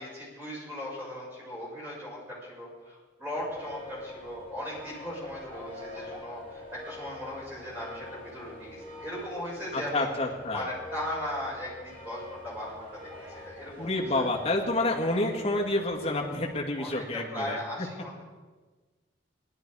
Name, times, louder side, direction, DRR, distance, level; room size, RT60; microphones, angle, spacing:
voice 1, 0.0-14.3 16.8-18.2, equal, 10° right, -6 dB, 6.0 m, -38 dB
sound 1, 3.3-16.6, left 2 dB, 30° right, 3.8 m, -45 dB
voice 2, 9.7-10.7 13.8-17.6, left 2 dB, 35° left, -1 dB, 2.0 m, -28 dB
18.0 x 12.0 x 4.8 m, 1.3 s
head